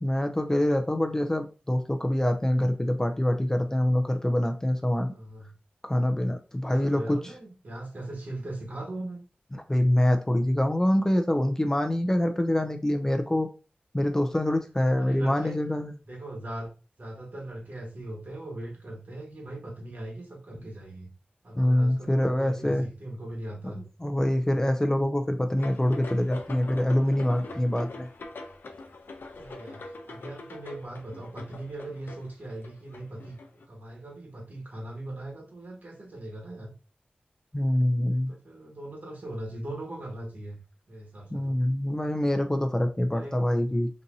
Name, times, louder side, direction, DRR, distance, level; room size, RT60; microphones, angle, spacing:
voice 1, 0.0-5.1 5.8-7.2 9.7-13.5 13.9-15.9 21.6-22.8 23.6-23.7 24.0-28.1 37.5-38.3 41.3-43.9, left 1 dB, 15° left, 0.5 m, -25 dB
voice 2, 5.0-5.5 6.7-9.2 14.5-14.6 15.0-15.6 16.0-21.1 21.4-23.8 29.4-36.7 38.1-40.6 40.9-41.6 43.1-43.5, right 1 dB, 55° right, 1.4 m, -40 dB
sound 1, 25.6-33.7, left 2 dB, 85° left, 0.5 m, -43 dB
4.1 x 2.6 x 2.6 m
wide cardioid pair, 70°, 3 cm